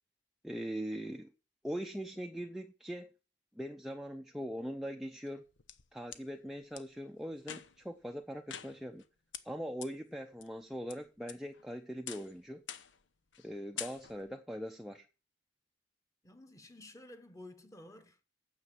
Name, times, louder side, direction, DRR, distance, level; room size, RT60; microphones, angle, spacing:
voice 1, 0.4-1.3 1.6-3.1 3.6-5.4 5.9-9.0 9.4-12.6 13.4-15.1, equal, ahead, 0.6 m, -41 dB
sound 1, 5.3-6.2 6.8-6.9 7.4-7.9 8.5-9.1 9.3-9.4 9.8-9.9 10.4-10.9 11.3-11.7 12.1-12.3 12.7-13.0 13.3-13.5 13.8-14.3, left 9 dB, 90° left, 0.9 m, -45 dB
voice 2, 16.2-18.3, left 1 dB, 20° left, 1.2 m, -53 dB
9.5 x 6.9 x 7.6 m
head